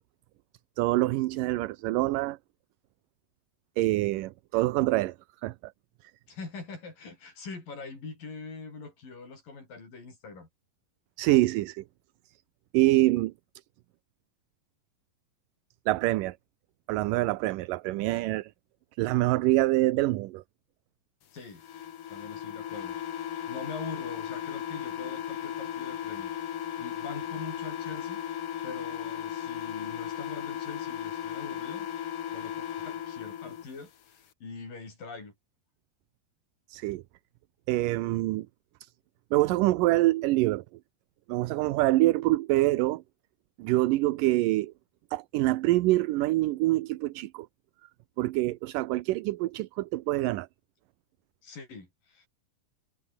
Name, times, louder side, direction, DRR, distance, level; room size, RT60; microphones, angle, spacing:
voice 1, 0.8-2.4 3.8-5.2 5.4-5.7 11.2-11.8 12.7-13.3 15.9-16.4 16.9-18.5 19.0-20.4 36.7-37.0 37.7-38.5 38.8-38.9 39.3-40.6 41.3-43.0 43.6-44.7 45.1-47.5 48.2-50.5, right 18 dB, 75° right, 2.3 m, -25 dB
voice 2, 6.3-10.5 21.3-21.6 22.1-23.0 23.5-26.3 26.8-28.2 28.6-31.9 32.3-35.3 51.4-52.3, left 4 dB, 70° left, 9.7 m, -43 dB
sound 1, 21.6-33.6, left 10 dB, 55° left, 1.9 m, -36 dB
omnidirectional pair, 4.0 m